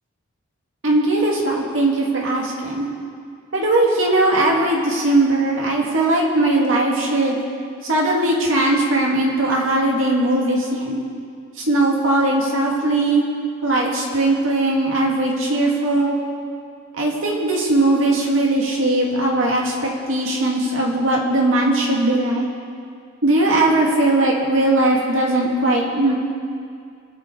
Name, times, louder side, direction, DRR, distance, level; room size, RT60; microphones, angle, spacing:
voice 1, 0.8-2.9 3.5-7.4 7.8-11.0 11.7-13.2 13.6-16.2 17.0-22.5 23.2-26.1, right 2 dB, 80° right, -2 dB, 2.4 m, -19 dB
22.5 x 8.3 x 4.7 m, 2.3 s
head